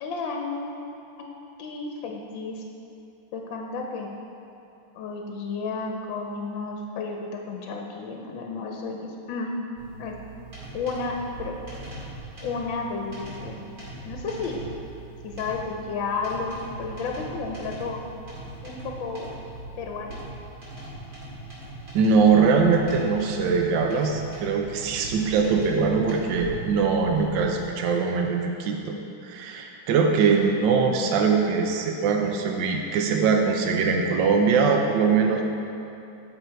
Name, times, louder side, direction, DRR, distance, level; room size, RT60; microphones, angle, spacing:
voice 1, 0.0-0.7 1.6-2.6 3.3-4.1 4.9-9.6 10.0-10.1 10.7-11.6 12.4-13.6 14.0-14.6 15.2-18.0 18.6-19.3 19.8-20.2, left 4 dB, 75° left, 1 dB, 1.4 m, -32 dB
sound 1, 9.8-27.7, right 2 dB, 55° right, 2.9 m, -40 dB
voice 2, 21.9-29.0 29.2-35.5, right 5 dB, 70° right, 2 dB, 1.3 m, -22 dB
12.5 x 4.2 x 4.5 m, 2.7 s
omnidirectional pair, 2.2 m